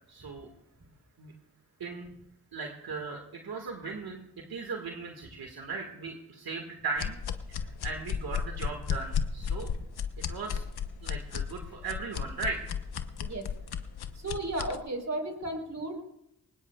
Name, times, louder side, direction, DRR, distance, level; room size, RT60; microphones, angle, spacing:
voice 1, 0.1-0.5 1.2-1.3 1.8-2.1 2.5-4.2 4.5-7.2 7.5-9.7 10.3-10.6 11.0-12.6, right 4 dB, 75° right, 2 dB, 1.9 m, -37 dB
sound 1, 7.0-14.8, left 7 dB, 85° left, 1.0 m, -34 dB
voice 2, 14.2-16.0, right 1 dB, 45° right, 5 dB, 4.0 m, -34 dB
23.0 x 20.0 x 2.4 m, 0.81 s
cardioid pair, 40°, 37 cm